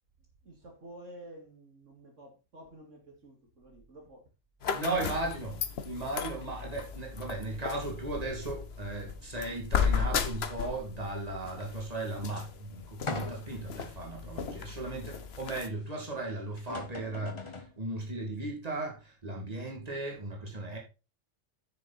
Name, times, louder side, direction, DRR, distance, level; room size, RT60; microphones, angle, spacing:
voice 1, 0.4-4.3 4.7-5.2, right 1 dB, 70° right, 2.8 m, -50 dB
sound 1, 4.6-15.7, left 6 dB, 55° left, 1.1 m, -35 dB
voice 2, 4.7-20.8, right 2 dB, 30° right, 2.7 m, -36 dB
sound 2, 13.1-13.7 14.3-14.4 16.2-16.3 16.6-17.8, left 3 dB, 25° left, 0.9 m, -39 dB
9.6 x 6.6 x 4.2 m
omnidirectional pair, 1.3 m